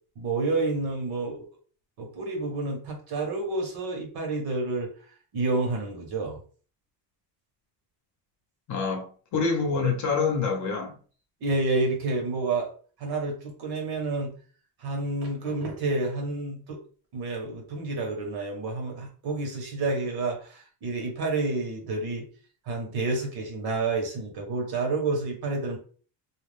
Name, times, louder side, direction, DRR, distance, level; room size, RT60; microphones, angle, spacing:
voice 1, 0.2-1.4 2.0-4.9 5.3-6.4 9.7-9.9 11.4-12.7 13.0-14.3 14.8-16.8 17.1-22.3 22.7-25.8, right 3 dB, 55° right, 1.1 m, -29 dB
voice 2, 8.7-11.0, left 5 dB, 40° left, 0.8 m, -26 dB
2.4 x 2.3 x 3.4 m
cardioid pair, 165°, 45 cm